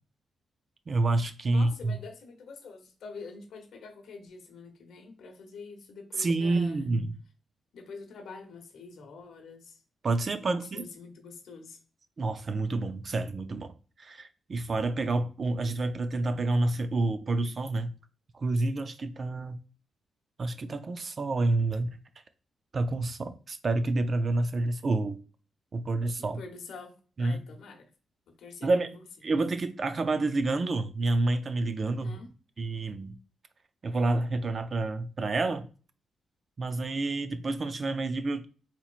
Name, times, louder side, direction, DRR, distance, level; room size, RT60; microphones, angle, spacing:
voice 1, 0.9-2.0 6.2-7.2 10.0-10.9 12.2-17.9 18.3-19.6 20.4-21.9 22.7-25.2 25.7-26.4 27.2-27.4 28.6-28.9 29.2-32.2 32.6-33.2 33.8-35.7 36.6-38.5, right 2 dB, 40° right, 0.4 m, -28 dB
voice 2, 1.4-6.9 7.7-9.8 10.4-11.8 26.2-26.9 27.2-27.9 28.4-29.0 31.9-32.3, left 4 dB, 75° left, 0.9 m, -46 dB
4.2 x 3.0 x 2.4 m
cardioid pair, 125°, 0 cm